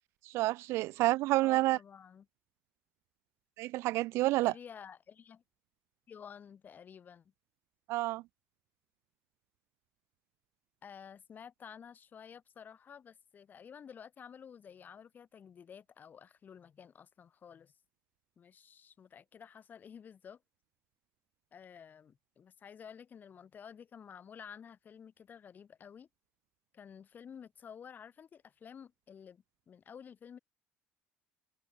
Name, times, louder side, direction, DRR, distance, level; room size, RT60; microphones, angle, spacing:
voice 1, 0.3-1.8 3.6-4.5 7.9-8.2, right 18 dB, 70° right, 0.4 m, -29 dB
voice 2, 1.4-2.2 4.4-5.4 6.1-7.3 10.8-17.7 18.4-20.4 21.5-26.1 26.7-30.4, left 7 dB, 40° left, 6.4 m, -52 dB
supercardioid pair, 100°, 5 cm